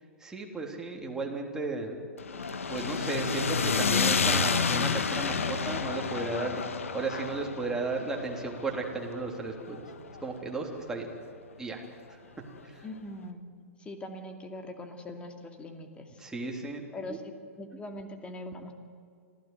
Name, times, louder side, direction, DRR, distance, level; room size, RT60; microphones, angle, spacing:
voice 1, 0.2-2.0 2.7-6.6 6.9-9.9 10.2-11.1 11.6-11.8 12.6-12.8 16.2-16.8 17.1-17.2, right 3 dB, 10° right, 0 dB, 3.4 m, -34 dB
sound 1, 2.2-10.4, left 5 dB, 75° left, 1.5 m, -30 dB
voice 2, 12.8-13.4 13.8-16.2 16.9-17.2 17.6-18.7, left 1 dB, 15° left, 5 dB, 2.4 m, -41 dB
25.5 x 16.0 x 7.9 m, 2.4 s
figure-of-eight pair, 110°, 7 cm